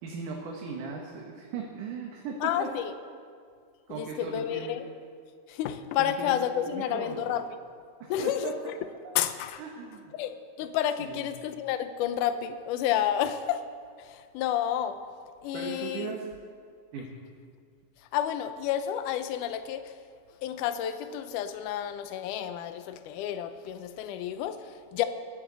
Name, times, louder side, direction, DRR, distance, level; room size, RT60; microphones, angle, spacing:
voice 1, 0.0-2.7 3.9-4.7 6.0-6.3 6.6-7.3 8.0-8.5 9.6-10.1 11.0-11.3 15.5-16.3 16.9-17.1, right 5 dB, 70° right, -1 dB, 2.7 m, -38 dB
voice 2, 2.4-2.9 3.9-4.9 5.5-7.4 8.1-8.7 9.2-9.6 10.1-13.6 14.0-15.0 15.4-16.1 18.1-19.9 20.4-25.1, left 10 dB, 80° left, 9 dB, 2.0 m, -30 dB
22.5 x 10.0 x 4.0 m, 2.2 s
omnidirectional pair, 4.0 m